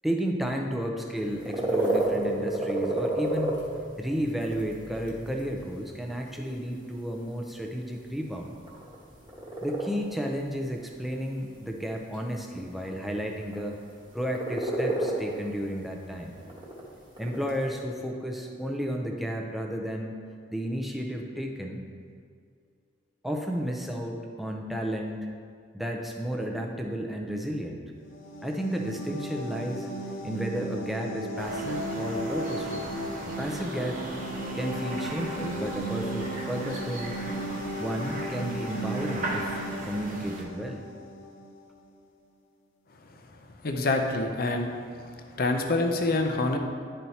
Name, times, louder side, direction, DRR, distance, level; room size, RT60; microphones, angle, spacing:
voice 1, 0.0-3.7 4.0-8.5 9.6-13.8 14.1-16.4 17.2-20.2 20.5-21.8 23.2-25.3 25.7-27.8 28.4-32.9 33.4-34.0 34.5-37.1 37.8-40.8, equal, ahead, 1 dB, 0.5 m, -32 dB
sound 1, 1.1-17.8, right 2 dB, 25° right, 1.1 m, -33 dB
sound 2, 28.0-41.6, right 1 dB, 80° left, 0.8 m, -35 dB
sound 3, 31.4-40.4, right 1 dB, 40° right, 0.8 m, -38 dB
voice 2, 43.6-44.7 45.4-46.6, left 2 dB, 50° left, 4 dB, 0.5 m, -26 dB
10.5 x 4.4 x 2.8 m, 2.2 s
head